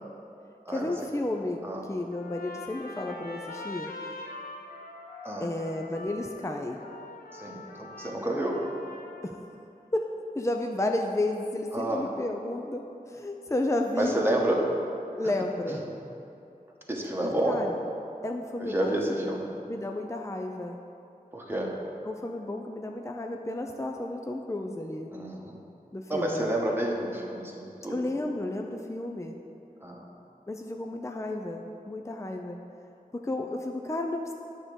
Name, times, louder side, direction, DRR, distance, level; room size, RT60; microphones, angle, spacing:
voice 1, 0.7-3.9 5.4-6.8 9.2-9.4 9.9-10.1 10.3-12.8 13.1-14.2 15.2-15.8 17.2-17.8 18.2-19.4 19.7-20.8 22.0-25.1 25.9-26.5 27.9-29.3 30.5-32.6 33.1-34.3, left 2 dB, 20° left, 3 dB, 0.5 m, -32 dB
Trumpet, 2.1-9.4, left 2 dB, 90° left, 0.9 m, -43 dB
voice 2, 7.3-8.6 11.7-12.1 14.0-14.6 15.7-15.8 16.9-17.6 18.6-19.5 21.3-21.8 25.1-25.5 26.1-28.0 29.8-30.0, right 1 dB, 15° right, -2 dB, 1.2 m, -29 dB
9.5 x 3.6 x 6.9 m, 2.7 s
wide cardioid pair, 45°, 15 cm